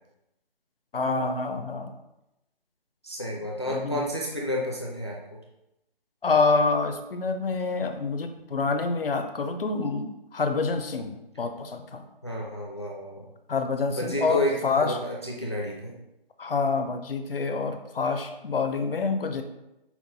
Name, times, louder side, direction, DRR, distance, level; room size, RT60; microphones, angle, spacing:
voice 1, 0.9-1.9 3.7-4.1 6.2-12.0 13.5-15.0 16.4-19.4, left 4 dB, 65° left, 7 dB, 0.7 m, -27 dB
voice 2, 3.0-5.2 12.2-13.3 13.9-15.9, left 1 dB, 30° left, -2 dB, 0.4 m, -30 dB
5.8 x 2.1 x 4.1 m, 0.90 s
figure-of-eight pair, 160°, 30 cm